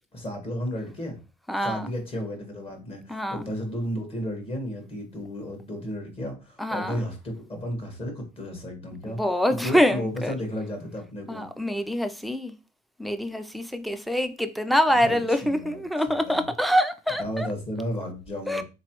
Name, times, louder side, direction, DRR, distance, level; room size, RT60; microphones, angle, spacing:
voice 1, 0.1-1.2 1.6-9.2 9.6-11.4 14.9-16.4 17.2-18.6, equal, 35° left, 1.4 m, -33 dB
voice 2, 1.5-1.9 3.1-3.4 6.6-7.0 9.1-10.3 11.3-12.5 13.0-17.5 18.5-18.6, equal, ahead, 0.4 m, -25 dB
3.7 x 3.0 x 3.0 m
cardioid pair, 110°, 17 cm